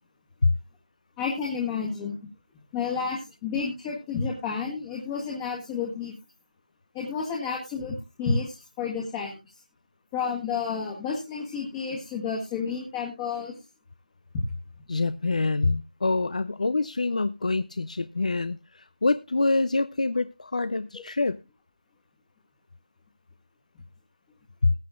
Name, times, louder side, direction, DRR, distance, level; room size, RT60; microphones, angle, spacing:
voice 1, 1.2-2.3 2.7-6.1 6.9-9.4 10.1-13.6, left 5 dB, 10° left, 1.5 m, -30 dB
voice 2, 14.9-21.4 24.6-24.7, left 3 dB, 60° left, 0.6 m, -25 dB
20.0 x 8.6 x 2.4 m
figure-of-eight pair, 165°, 4 cm